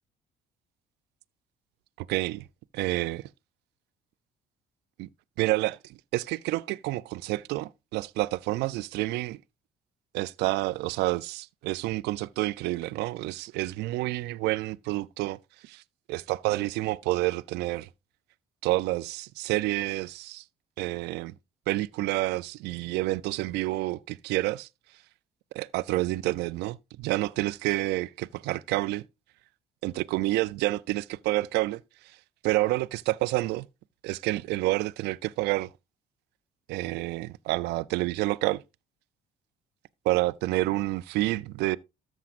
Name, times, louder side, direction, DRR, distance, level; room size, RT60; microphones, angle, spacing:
voice 1, 2.1-2.4 2.7-3.3 5.0-5.1 5.4-9.4 10.1-15.8 16.1-17.9 18.6-20.4 20.8-21.3 21.7-24.7 25.5-29.0 29.8-32.2 32.4-33.7 34.0-35.7 36.7-38.6 40.0-41.8, right 18 dB, 85° right, 0.4 m, -29 dB
13.5 x 7.2 x 2.5 m
cardioid pair, 110°, 17 cm